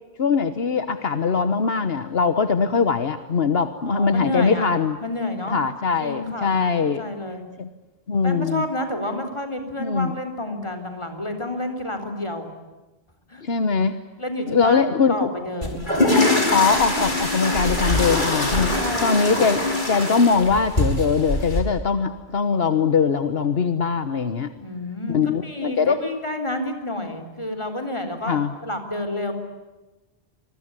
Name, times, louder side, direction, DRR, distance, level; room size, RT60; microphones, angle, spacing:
voice 1, 0.2-5.0 5.5-7.0 7.6-7.7 8.1-8.6 9.8-10.1 13.4-14.0 14.5-15.2 15.9-16.0 16.3-24.5 25.1-26.0 28.3-28.5, left 5 dB, 70° left, 10 dB, 1.4 m, -21 dB
voice 2, 3.9-4.7 5.0-5.6 6.0-6.6 7.0-7.4 8.2-12.5 13.3-13.4 14.2-16.1 18.8-19.5 24.6-29.3, left 1 dB, 30° left, 6 dB, 4.0 m, -30 dB
sound 1, 15.6-21.6, left 1 dB, 50° left, 5.6 m, -23 dB
27.0 x 22.0 x 9.7 m, 1.1 s
omnidirectional pair, 1.1 m